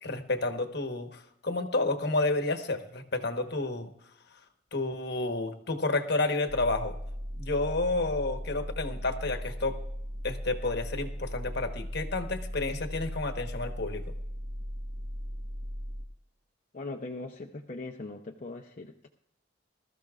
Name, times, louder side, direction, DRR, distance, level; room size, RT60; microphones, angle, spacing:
voice 1, 0.0-3.9 4.7-7.0 7.4-9.8 10.2-14.0, left 2 dB, 55° left, 7 dB, 1.2 m, -30 dB
sound 1, 6.5-16.1, equal, 75° right, 1.2 m, -38 dB
voice 2, 16.7-19.1, left 2 dB, 40° left, 0 dB, 0.7 m, -40 dB
20.5 x 13.5 x 2.4 m, 0.74 s
head